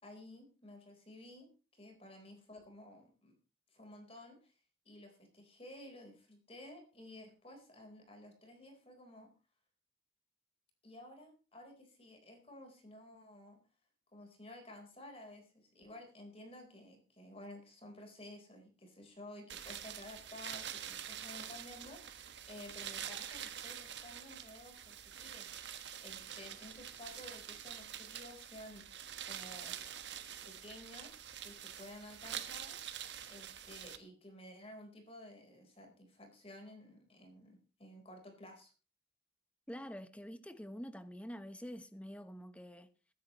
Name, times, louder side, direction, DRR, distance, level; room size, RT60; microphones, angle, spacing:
voice 1, 0.0-3.3 3.7-4.5 4.8-9.3 10.8-13.6 14.1-29.9 30.4-32.8 33.3-38.7, left 1 dB, 30° left, 4.1 m, -53 dB
sound 1, 19.5-34.0, right 9 dB, 70° right, 1.5 m, -46 dB
voice 2, 39.7-42.9, equal, 5° left, 1.0 m, -47 dB
22.0 x 10.5 x 3.1 m
head